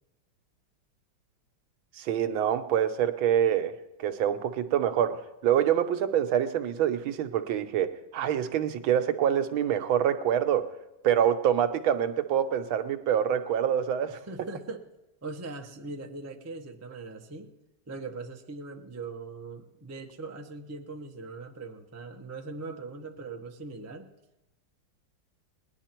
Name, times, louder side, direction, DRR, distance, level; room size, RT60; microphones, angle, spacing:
voice 1, 1.9-10.7 11.0-14.2, right 9 dB, 85° right, 9 dB, 1.6 m, -26 dB
voice 2, 14.3-14.8 15.2-17.5 17.9-24.1, right 3 dB, 25° right, 4 dB, 0.3 m, -40 dB
20.0 x 11.0 x 4.5 m, 0.97 s
omnidirectional pair, 2.2 m